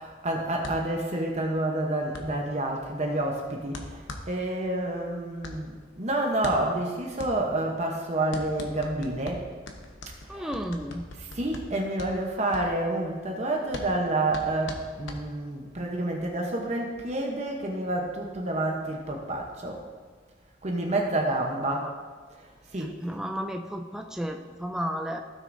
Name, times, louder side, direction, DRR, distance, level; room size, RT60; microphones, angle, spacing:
voice 1, 0.0-9.5 10.3-10.5 11.2-19.8 20.6-21.9 22.7-22.9, right 1 dB, 35° right, 1 dB, 0.9 m, -29 dB
sound 1, 0.6-15.7, left 1 dB, 80° left, 1.0 m, -42 dB
voice 2, 10.3-11.1 21.6-21.9 23.0-25.2, equal, 5° right, 3 dB, 0.4 m, -33 dB
15.5 x 6.4 x 2.6 m, 1.5 s
head